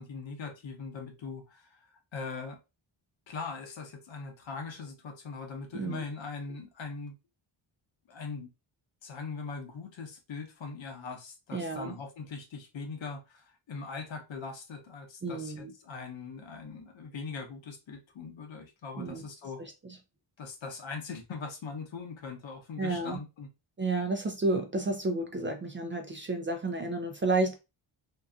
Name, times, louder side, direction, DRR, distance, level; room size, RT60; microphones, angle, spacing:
voice 1, 0.0-2.6 3.3-7.1 8.1-8.5 9.0-19.6 20.4-23.5, left 4 dB, 65° left, 0.9 m, -41 dB
voice 2, 11.5-12.0 15.2-15.7 19.0-19.2 19.6-19.7 22.8-23.2 23.8-27.6, right 2 dB, 25° right, 0.4 m, -31 dB
2.7 x 2.3 x 2.3 m
cardioid pair, 60°, 50 cm